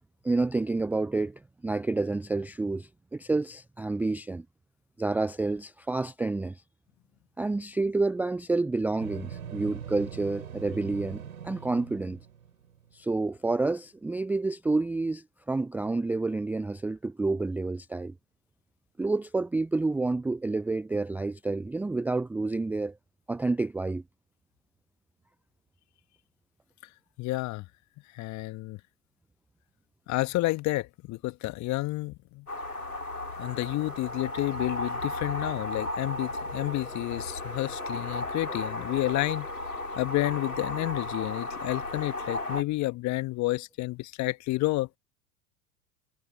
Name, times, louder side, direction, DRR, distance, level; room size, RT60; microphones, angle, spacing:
voice 1, 0.2-4.5 5.0-6.6 7.4-12.2 12.9-18.1 19.0-23.0 23.3-24.0, right 3 dB, 5° right, 0.5 m, -29 dB
sound 1, 9.0-12.9, right 8 dB, 75° right, 7.1 m, -42 dB
voice 2, 27.2-27.6 28.1-28.8 30.1-32.5 33.4-39.5 39.9-44.9, left 19 dB, 40° left, 1.7 m, -30 dB
sound 2, 32.5-42.6, left 2 dB, 90° left, 6.1 m, -35 dB
figure-of-eight pair, 85°, 43 cm